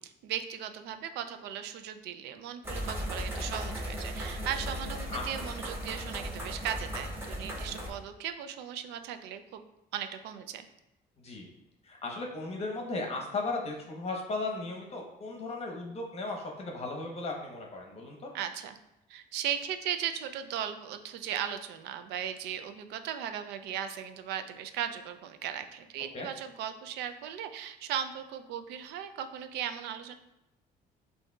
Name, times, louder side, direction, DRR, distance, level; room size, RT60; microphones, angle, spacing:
voice 1, 0.0-9.6 9.9-10.7 18.3-18.8 19.1-30.1, right 9 dB, 85° right, 9 dB, 0.4 m, -37 dB
sound 1, 2.6-7.9, equal, 15° right, 1.0 m, -36 dB
voice 2, 11.8-18.3 26.1-26.3, left 3 dB, 40° left, 0 dB, 0.9 m, -36 dB
6.3 x 2.7 x 2.3 m, 0.92 s
cardioid pair, 110°, 17 cm